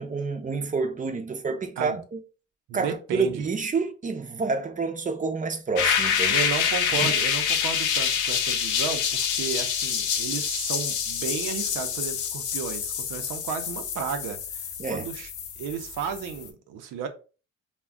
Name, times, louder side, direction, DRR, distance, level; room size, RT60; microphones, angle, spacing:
voice 1, 0.0-2.2 2.7-6.4 6.9-7.1 14.8-15.1, right 4 dB, 25° right, 0.6 m, -28 dB
voice 2, 2.7-3.4 6.3-15.3 15.6-17.1, right 7 dB, 85° right, 0.6 m, -33 dB
sound 1, 5.8-16.5, left 7 dB, 90° left, 0.6 m, -27 dB
2.4 x 2.2 x 3.5 m
cardioid pair, 90°, 30 cm